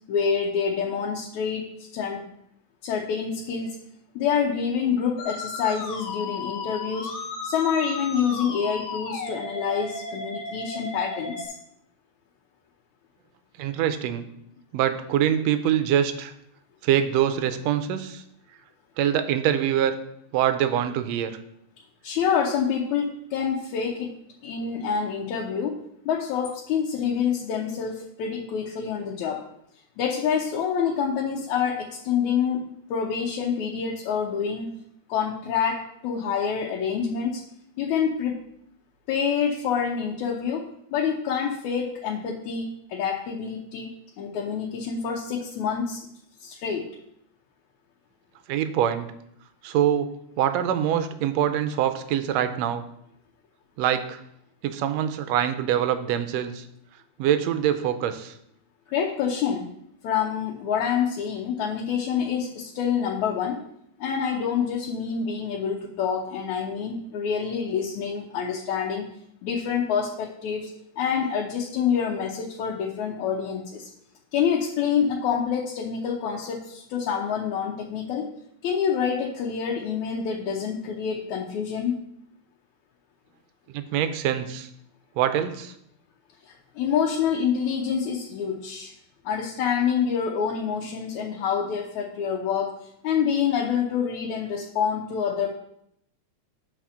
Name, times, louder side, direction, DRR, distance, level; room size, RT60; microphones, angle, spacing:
voice 1, 0.1-2.3 2.8-3.8 4.2-11.5 22.0-24.2 24.4-29.4 30.0-34.7 35.1-37.4 37.8-38.4 39.1-43.9 44.2-46.0 46.4-46.9 58.9-59.6 60.0-63.6 64.0-69.1 69.4-73.9 74.3-78.3 78.6-82.0 86.5-88.9 89.2-92.7 93.0-95.5, left 7 dB, 80° left, -1 dB, 2.2 m, -27 dB
Musical instrument, 5.2-11.5, left 3 dB, 60° left, 1.8 m, -34 dB
voice 2, 13.6-14.3 14.7-16.3 16.8-18.2 19.0-20.0 20.3-21.3 48.5-49.1 49.6-50.1 50.4-52.8 53.8-54.2 54.6-56.6 57.2-58.3 83.7-84.7 85.2-85.7, right 10 dB, 75° right, 9 dB, 1.7 m, -24 dB
8.1 x 4.3 x 6.2 m, 0.75 s
omnidirectional pair, 3.3 m